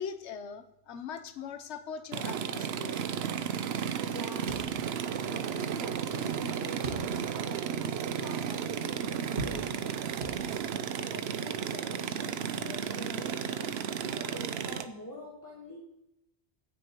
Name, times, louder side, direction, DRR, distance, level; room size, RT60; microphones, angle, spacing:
voice 1, 0.0-3.1, left 7 dB, 85° left, 10 dB, 1.0 m, -40 dB
sound 1, 2.1-14.8, right 8 dB, 70° right, 0.8 m, -33 dB
voice 2, 4.0-4.8 5.2-10.2 10.9-15.8, left 1 dB, 15° left, -2 dB, 1.5 m, -45 dB
sound 2, 4.5-5.3 5.7-5.8 6.8-7.5 8.0-8.1 9.4-9.9 10.2-10.9, right 3 dB, 85° right, 1.7 m, -40 dB
16.0 x 6.4 x 3.0 m, 0.89 s
omnidirectional pair, 1.1 m